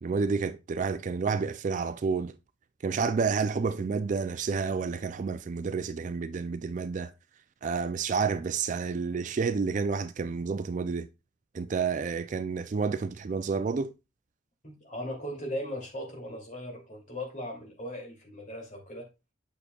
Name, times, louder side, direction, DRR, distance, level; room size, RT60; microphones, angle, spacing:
voice 1, 0.0-2.4 2.8-7.1 7.6-11.1 11.5-13.9, right 5 dB, 35° right, 0.3 m, -30 dB
voice 2, 14.6-19.1, equal, 35° left, 2.5 m, -38 dB
8.5 x 6.6 x 2.3 m
head